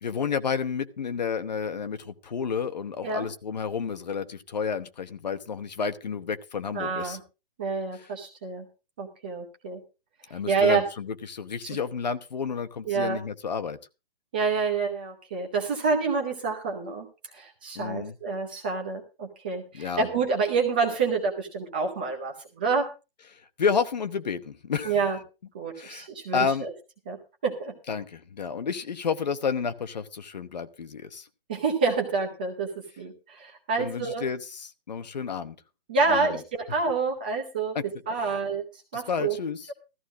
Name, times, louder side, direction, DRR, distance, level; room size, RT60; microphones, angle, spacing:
voice 1, 0.0-7.2 7.9-8.0 10.3-13.8 17.7-18.1 19.7-20.1 23.3-25.0 25.7-26.1 26.3-26.7 27.9-31.3 33.8-35.6 36.1-36.4 37.7-37.8 38.2-38.4 38.9-39.7, left 6 dB, 45° left, 11 dB, 1.0 m, -31 dB
voice 2, 6.7-7.2 7.6-8.7 9.0-9.8 10.5-10.8 11.7-11.8 12.9-13.2 14.3-17.1 17.3-22.9 24.8-25.2 25.5-26.7 27.1-27.7 31.5-32.7 33.0-34.2 35.9-37.7 38.1-38.6 38.9-39.4, right 4 dB, 10° right, 1 dB, 0.7 m, -28 dB
16.0 x 14.0 x 2.5 m, 0.29 s
hypercardioid pair, 180°, 30 cm